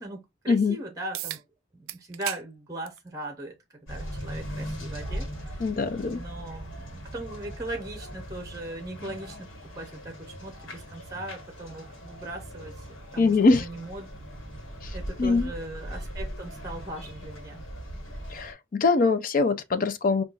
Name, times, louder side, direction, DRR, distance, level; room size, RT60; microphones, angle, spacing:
voice 1, 0.0-1.4 1.7-5.6 6.0-12.9 13.1-14.1 14.9-17.6, right 1 dB, 15° right, 0.7 m, -39 dB
sound 1, 1.1-1.4 1.9-2.4 2.8-3.0 4.1-4.2 9.1-9.2, right 14 dB, 80° right, 0.3 m, -35 dB
sound 2, 3.9-18.5, equal, 75° left, 1.3 m, -39 dB
voice 2, 5.6-6.2 13.2-13.6 14.8-14.9 15.2-15.5 18.3-20.2, left 3 dB, 45° left, 0.4 m, -23 dB
5.4 x 2.3 x 2.4 m
head